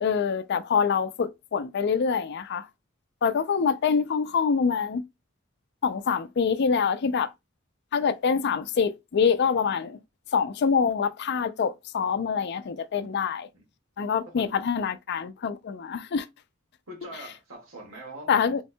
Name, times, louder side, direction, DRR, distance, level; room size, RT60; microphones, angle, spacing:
voice 1, 0.0-2.7 3.2-5.0 5.8-7.3 7.9-10.0 10.3-13.5 14.0-16.3 18.3-18.6, left 6 dB, 55° left, 0.4 m, -25 dB
voice 2, 14.3-14.6 16.9-18.6, right 1 dB, 90° right, 1.9 m, -43 dB
4.2 x 3.6 x 2.2 m
head